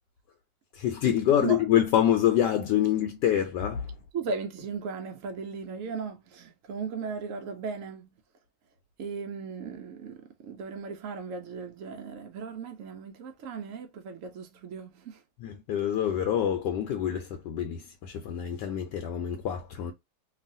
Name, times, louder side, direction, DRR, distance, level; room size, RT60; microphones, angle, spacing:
voice 1, 0.7-3.9 15.4-19.9, left 10 dB, 75° left, 1.1 m, -26 dB
voice 2, 4.1-8.1 9.0-15.2, right 5 dB, 85° right, 0.7 m, -37 dB
3.0 x 2.4 x 2.5 m
omnidirectional pair, 1.9 m